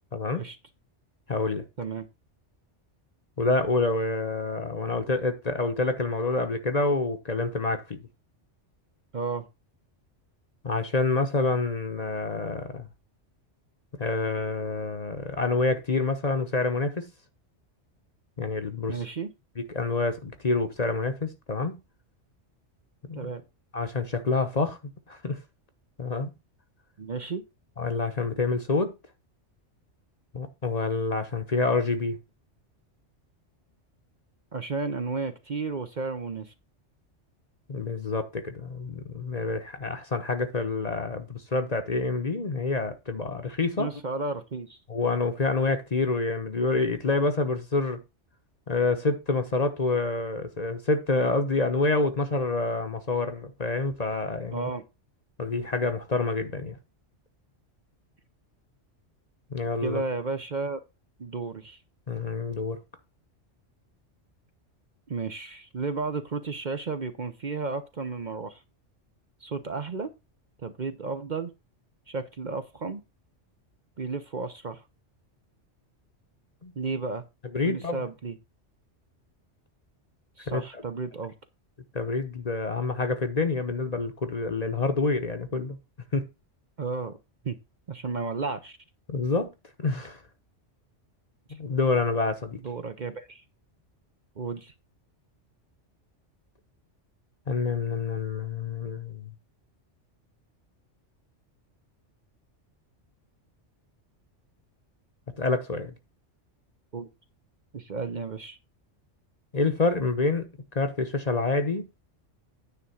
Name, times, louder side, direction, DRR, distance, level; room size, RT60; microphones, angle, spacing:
voice 1, 0.1-0.4 1.3-1.6 3.4-8.0 10.6-12.9 14.0-17.1 18.4-19.0 19.6-21.8 23.1-23.3 23.7-24.8 25.1-25.4 26.0-26.3 27.8-29.0 30.3-32.2 37.7-43.9 44.9-48.0 48.7-54.7 55.4-56.8 59.5-60.0 62.1-62.8 76.6-76.7 77.5-78.0 80.5-80.8 81.9-85.8 86.1-86.3 89.1-89.5 89.8-90.2 91.6-92.6 97.5-99.3 105.4-105.9 109.5-110.5 110.7-111.9, left 3 dB, 35° left, 1.0 m, -27 dB
voice 2, 9.1-9.5 18.9-19.3 23.1-23.4 27.0-27.4 34.5-36.5 43.8-44.8 54.5-54.8 59.8-60.8 61.2-61.8 65.1-68.6 69.4-70.1 70.6-71.5 72.1-73.0 74.0-74.8 76.8-77.2 77.6-78.4 80.4-81.3 86.8-87.2 87.4-87.6 87.9-88.8 92.6-93.4 94.4-94.7 106.9-107.1 107.7-108.6, right 4 dB, 45° right, 0.8 m, -33 dB
9.5 x 3.6 x 7.0 m
omnidirectional pair, 1.2 m